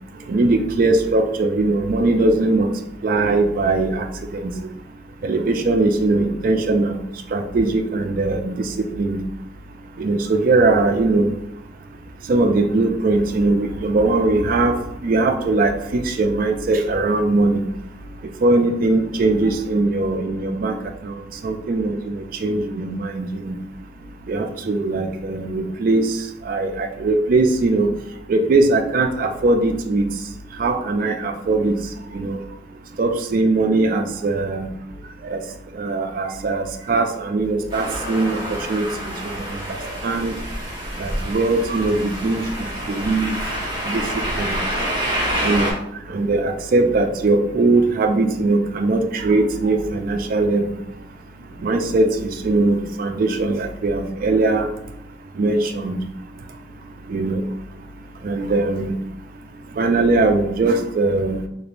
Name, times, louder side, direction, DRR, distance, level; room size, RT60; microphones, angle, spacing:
voice 1, 0.3-2.7 3.0-4.1 4.3-4.5 5.2-7.0 7.3-9.2 10.0-11.3 12.3-14.8 15.0-17.6 18.4-20.8 21.0-23.6 24.3-26.2 26.4-27.9 28.3-30.1 30.6-31.8 32.1-32.4 33.0-34.7 35.2-35.4 35.7-40.3 41.0-43.4 43.9-44.0 44.3-44.6 45.4-45.8 46.1-50.7 51.6-54.7 55.4-56.0 57.1-57.4 58.2-58.9 59.8-61.4, right 2 dB, 50° right, 5 dB, 0.3 m, -20 dB
sound 1, 37.7-45.7, equal, 25° right, 0.9 m, -27 dB
3.3 x 2.9 x 2.5 m, 0.78 s
head